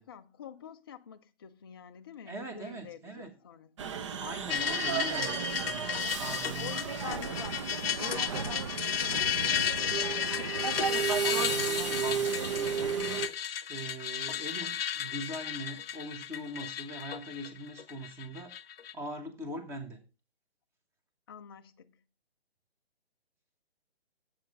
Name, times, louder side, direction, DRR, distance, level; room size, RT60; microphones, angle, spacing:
voice 1, 0.0-4.2 4.7-5.5 6.0-6.2 6.6-7.7 8.0-10.8 21.3-22.0, left 8 dB, 25° left, 0.4 m, -47 dB
voice 2, 2.3-3.3 4.2-6.9 11.2-13.2 13.7-18.5 18.9-20.0, right 1 dB, 10° right, 1.0 m, -41 dB
sound 1, 3.8-13.3, right 7 dB, 30° right, 0.5 m, -33 dB
sound 2, 4.5-18.9, left 8 dB, 65° left, 0.7 m, -34 dB
7.7 x 7.6 x 5.2 m
hypercardioid pair, 145°, 32 cm